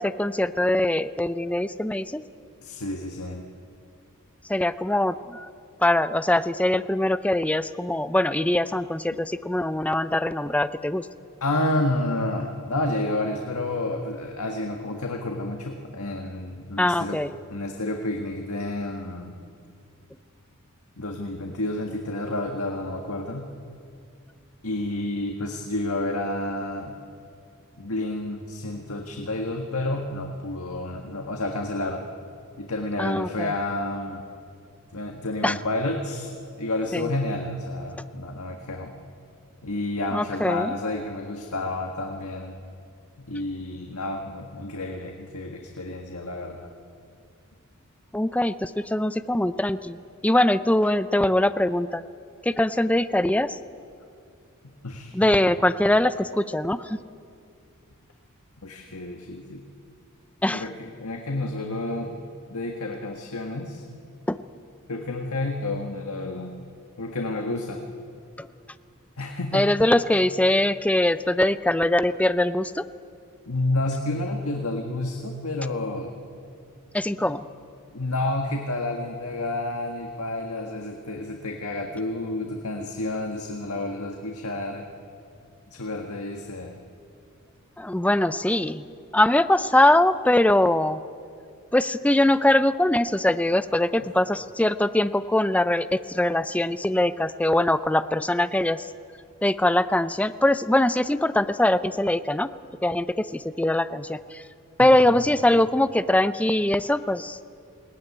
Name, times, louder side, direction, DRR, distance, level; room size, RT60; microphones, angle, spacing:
voice 1, 0.0-2.2 4.5-5.5 5.8-11.1 16.8-17.3 33.0-33.5 35.4-35.6 36.9-37.1 40.1-40.7 48.1-50.0 50.2-52.0 52.4-53.6 55.1-57.0 60.4-60.6 64.3-64.4 68.4-68.5 69.5-72.8 76.9-77.4 87.8-88.9 89.1-91.0 91.7-98.9 99.4-102.5 102.8-104.4 104.8-107.4, left 1 dB, 5° left, 12 dB, 0.5 m, -22 dB
voice 2, 2.6-3.4 11.4-17.2 17.5-19.4 21.0-23.5 24.6-27.0 27.8-32.0 32.6-34.3 34.9-39.0 39.6-42.6 43.2-46.7 54.6-55.4 58.6-59.6 60.5-62.2 62.5-63.8 64.9-66.5 67.0-67.8 69.2-69.7 73.5-76.1 77.2-77.3 77.9-84.9 85.7-86.8 104.8-105.2, left 2 dB, 75° left, 2 dB, 1.7 m, -30 dB
21.0 x 18.0 x 9.7 m, 2.3 s
head